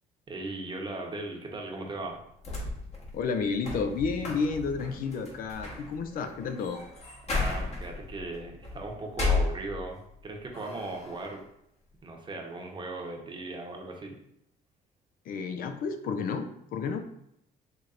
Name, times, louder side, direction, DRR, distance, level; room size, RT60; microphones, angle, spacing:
voice 1, 0.3-2.2 7.3-11.4 12.0-14.2, right 2 dB, 30° right, 1 dB, 0.9 m, -38 dB
sound 1, 2.4-10.1 10.5-11.3, left 3 dB, 40° left, 1.2 m, -34 dB
voice 2, 3.1-6.8 15.3-17.0, left 5 dB, 65° left, 7 dB, 0.4 m, -31 dB
4.2 x 3.1 x 2.5 m, 0.77 s
cardioid pair, 90°, 16 cm